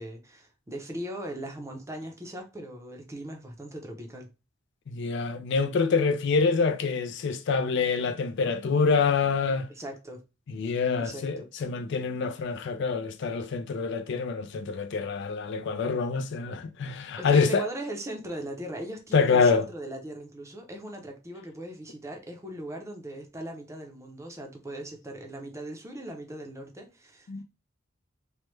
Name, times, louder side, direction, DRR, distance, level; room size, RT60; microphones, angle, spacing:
voice 1, 0.0-4.3 9.7-10.2 11.0-11.9 17.2-27.4, right 1 dB, 15° right, 0.6 m, -39 dB
voice 2, 4.9-9.7 10.5-17.6 19.1-19.7 27.3-27.4, left 5 dB, 65° left, 0.4 m, -26 dB
3.1 x 2.2 x 3.1 m
head